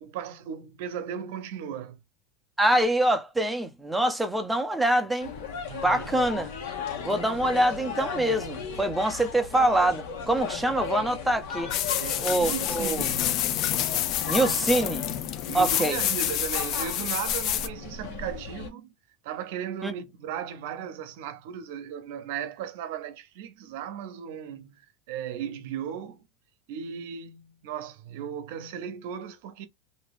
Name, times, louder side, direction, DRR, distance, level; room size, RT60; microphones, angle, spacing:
voice 1, 0.0-2.0 5.6-6.1 12.0-13.4 15.5-18.9 19.2-24.8 25.1-26.2 26.7-29.7, right 8 dB, 70° right, 0.7 m, -36 dB
voice 2, 2.6-5.3 5.8-6.5 7.0-11.7 12.2-13.1 14.3-15.0 15.5-16.0 19.8-19.9, right 1 dB, 5° right, 0.6 m, -25 dB
sound 1, 5.2-18.7, left 6 dB, 75° left, 1.3 m, -37 dB
sound 2, 11.7-17.7, left 12 dB, 50° left, 0.5 m, -28 dB
2.8 x 2.6 x 3.3 m
supercardioid pair, 115°, 0 cm